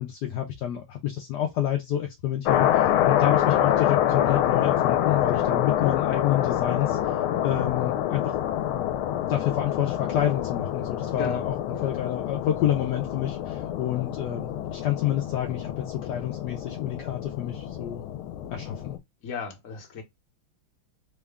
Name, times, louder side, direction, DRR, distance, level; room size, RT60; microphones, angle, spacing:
voice 1, 0.0-7.2 7.4-8.3 9.3-11.5 11.8-18.0 18.5-19.0, left 11 dB, 75° left, 1.0 m, -28 dB
sound 1, 2.4-19.0, left 11 dB, 90° left, 1.5 m, -26 dB
voice 2, 11.2-11.5 11.7-11.9 19.2-20.0, left 5 dB, 50° left, 1.2 m, -35 dB
3.7 x 2.2 x 3.4 m
omnidirectional pair, 2.3 m